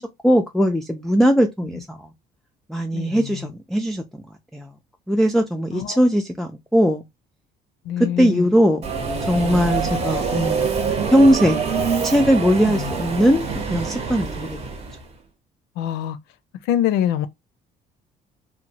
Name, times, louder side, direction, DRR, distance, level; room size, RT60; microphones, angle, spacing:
voice 1, 0.0-2.0 2.7-4.2 4.5-4.7 5.1-7.0 8.0-8.8 9.3-10.7 11.1-11.7 12.0-14.6, equal, ahead, 0.3 m, -19 dB
voice 2, 2.9-3.2 5.7-6.0 7.9-8.5 12.7-12.8 15.8-16.2 16.7-17.3, left 11 dB, 90° left, 0.5 m, -24 dB
Subway metro underground, 8.8-15.0, right 5 dB, 40° right, 0.8 m, -25 dB
3.0 x 2.1 x 2.7 m
cardioid pair, 110°, 17 cm